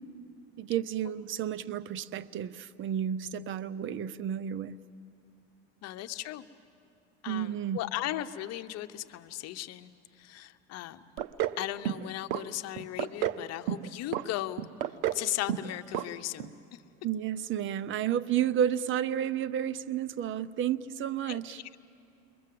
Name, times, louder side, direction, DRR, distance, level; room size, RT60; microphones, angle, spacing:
voice 1, 0.6-4.8 7.3-7.8 17.0-21.6, right 10 dB, 40° right, 14 dB, 0.7 m, -31 dB
voice 2, 5.8-6.5 7.2-9.9 10.2-11.1 11.6-14.7 15.1-16.5 21.3-21.4, left 14 dB, 50° left, 9 dB, 1.0 m, -36 dB
sound 1, 11.2-11.6 11.9-12.4 12.8-13.4 13.7-14.2 14.6-15.2 15.5-15.7 15.9-16.1 16.4-16.5, right 12 dB, 75° right, 0.9 m, -30 dB
28.5 x 23.0 x 7.7 m, 2.5 s
supercardioid pair, 125°, 33 cm